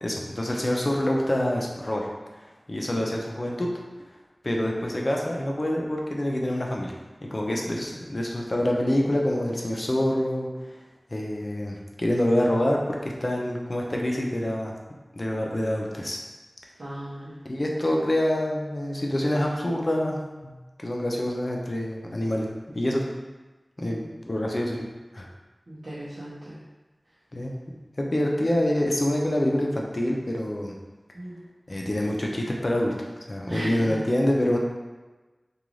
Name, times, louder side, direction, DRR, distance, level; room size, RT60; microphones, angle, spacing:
voice 1, 0.0-2.1 2.7-3.7 4.4-6.9 7.2-10.5 11.1-14.7 15.1-16.2 17.4-20.5 20.8-23.0 23.8-24.0 24.3-24.9 25.1-25.3 27.3-27.5 28.0-30.7 31.7-32.9 33.3-34.6, left 1 dB, 50° left, -1 dB, 0.5 m, -26 dB
voice 2, 16.8-17.3 23.8-24.1 25.7-26.6 31.1-31.3 33.5-34.0, right 1 dB, 80° right, -11 dB, 0.7 m, -36 dB
2.5 x 2.3 x 3.1 m, 1.2 s
wide cardioid pair, 45°, 0 cm